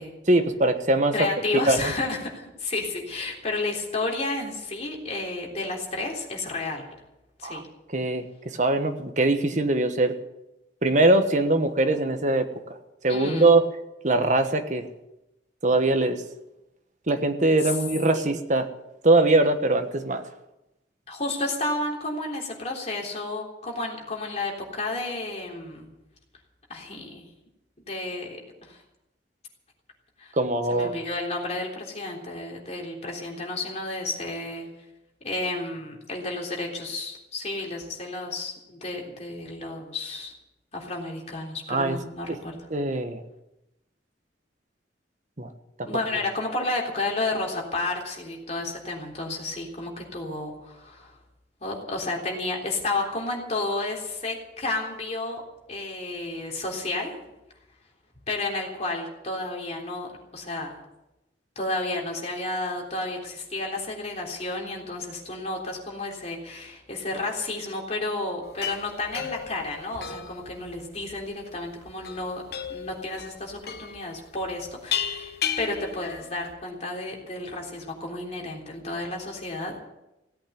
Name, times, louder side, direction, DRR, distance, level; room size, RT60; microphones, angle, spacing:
voice 1, 0.3-1.1 1.6-1.9 7.4-7.6 7.9-8.2 8.5-10.1 10.8-12.5 13.0-13.6 14.0-14.9 15.6-16.2 17.1-18.7 19.0-20.2 30.4-30.9 41.7-42.0 42.3-42.4 42.7-43.2 45.4-45.5 45.8-45.9, right 2 dB, 40° right, 7 dB, 1.3 m, -22 dB
voice 2, 1.1-6.9 7.4-7.6 13.1-13.6 17.6-17.7 18.1-18.3 21.1-25.9 26.7-27.2 27.8-28.4 28.6-28.8 30.2-30.3 30.7-34.7 35.2-40.3 40.7-42.6 45.9-51.2 51.6-55.4 55.7-57.1 58.3-60.7 61.6-72.4 72.7-79.8, left 2 dB, 40° left, -1 dB, 3.5 m, -31 dB
sound 1, 68.4-76.5, left 8 dB, 60° left, 1.3 m, -35 dB
17.0 x 8.7 x 9.5 m, 0.93 s
head